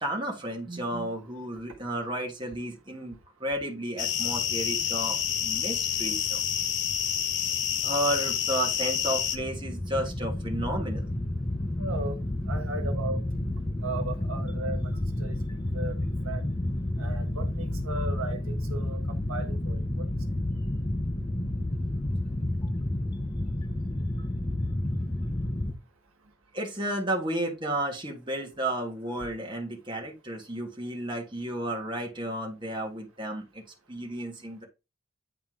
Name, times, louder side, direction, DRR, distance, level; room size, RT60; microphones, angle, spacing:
voice 1, 0.0-3.1 3.4-6.4 7.8-11.0 26.5-33.6 33.9-34.6, right 1 dB, 20° right, 1.7 m, -32 dB
sound 1, 4.0-9.4, left 9 dB, 60° left, 0.9 m, -28 dB
sound 2, 9.2-25.7, left 1 dB, 20° left, 0.7 m, -30 dB
voice 2, 11.8-12.2 12.5-13.2 13.8-14.9 15.2-15.4 15.7-15.9 16.2-16.4 17.0-19.0 19.3-19.8, right 2 dB, 85° right, 1.4 m, -36 dB
9.4 x 4.3 x 3.7 m
head